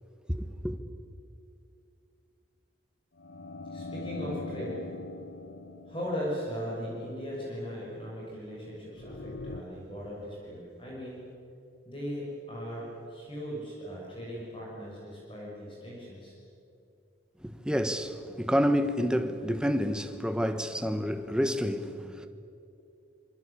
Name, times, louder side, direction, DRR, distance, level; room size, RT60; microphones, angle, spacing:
voice 1, 0.3-0.8 17.4-22.3, equal, 5° right, 1.3 m, -29 dB
sound 1, 3.2-7.1 8.9-9.6, left 3 dB, 80° left, 1.3 m, -42 dB
voice 2, 3.7-4.9 5.9-11.2 11.8-16.4, equal, 25° left, 6.8 m, -38 dB
26.5 x 25.0 x 8.6 m
head